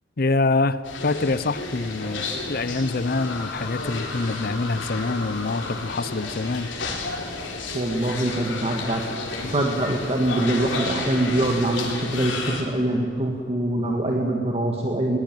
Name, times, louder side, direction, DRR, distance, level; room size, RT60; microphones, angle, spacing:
voice 1, 0.2-6.7, left 3 dB, 50° left, 15 dB, 0.7 m, -25 dB
sound 1, 0.8-12.6, left 3 dB, 70° left, 4.0 m, -32 dB
voice 2, 7.7-9.0 9.4-15.2, right 1 dB, 30° right, 1 dB, 1.6 m, -24 dB
20.0 x 19.0 x 9.1 m, 2.5 s
head